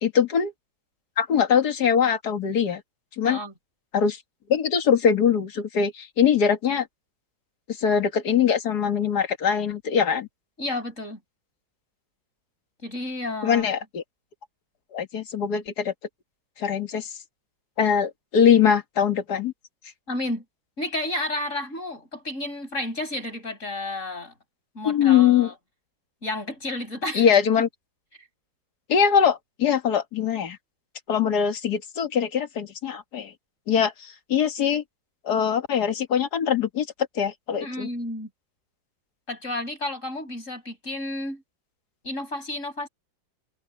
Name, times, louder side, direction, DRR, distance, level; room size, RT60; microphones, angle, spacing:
voice 1, 0.0-0.5 1.2-2.8 3.2-3.4 3.9-4.2 4.5-6.9 7.8-10.3 13.4-14.0 14.9-15.9 16.6-17.1 17.8-19.5 24.9-25.5 27.1-27.7 28.9-30.6 31.1-33.3 33.7-34.8 35.2-36.9 37.2-37.9, left 7 dB, 60° left, 2.3 m, -22 dB
voice 2, 3.2-3.5 10.6-11.2 12.8-13.7 20.1-20.4 20.8-24.3 24.7-25.5 26.2-27.3 27.6-27.7 37.6-38.3 39.3-41.4 42.0-42.9, left 1 dB, 40° left, 6.9 m, -31 dB
omnidirectional pair, 2.0 m